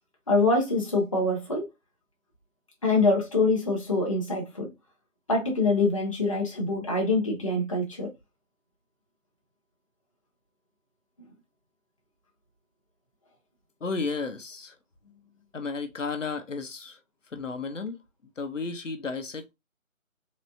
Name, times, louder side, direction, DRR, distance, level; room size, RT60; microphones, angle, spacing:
voice 1, 0.3-1.7 2.8-4.7 5.3-8.1, left 2 dB, 25° left, 0.9 m, -25 dB
voice 2, 13.8-14.7 15.5-17.0 17.3-18.0 18.4-19.5, left 4 dB, 60° left, 1.0 m, -33 dB
4.1 x 3.2 x 2.7 m
figure-of-eight pair, 165°, 41 cm